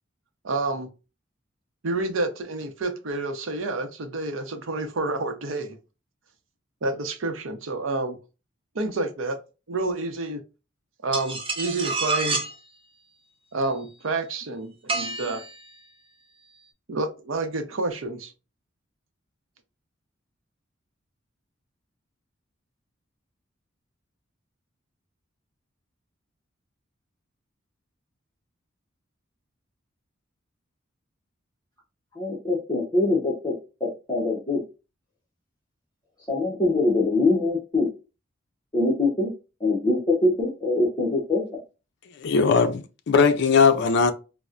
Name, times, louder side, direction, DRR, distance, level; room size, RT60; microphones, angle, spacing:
voice 1, 0.4-0.9 1.8-5.8 6.8-8.2 8.7-9.4 9.7-10.4 11.0-12.5 13.5-15.4 16.9-18.3, right 2 dB, 85° right, 0.6 m, -29 dB
sound 1, 11.1-12.5 14.9-15.7, right 3 dB, 30° right, 0.7 m, -28 dB
voice 2, 32.2-33.5 33.8-34.6 36.3-37.9 38.7-39.3 39.6-41.4, left 2 dB, 20° left, 0.7 m, -23 dB
voice 3, 42.2-44.1, left 5 dB, 60° left, 0.4 m, -19 dB
4.2 x 2.1 x 2.4 m
head